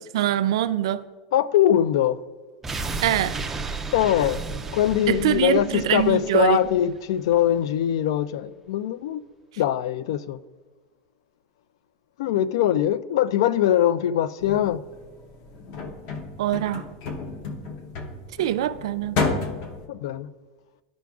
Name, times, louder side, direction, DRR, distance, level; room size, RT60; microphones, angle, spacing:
voice 1, 0.1-1.1 3.0-3.4 5.1-6.6 16.4-16.9 18.4-19.2, right 12 dB, 85° right, 0.4 m, -23 dB
voice 2, 1.3-2.2 3.9-4.4 4.7-9.2 9.6-10.4 12.2-14.8 19.9-20.3, left 11 dB, 75° left, 0.3 m, -22 dB
sound 1, 2.6-7.6 7.9-8.0, right 3 dB, 10° right, 0.3 m, -34 dB
sound 2, 14.4-19.9, left 4 dB, 45° left, 0.8 m, -32 dB
13.0 x 5.0 x 2.3 m
supercardioid pair, 165°, 3 cm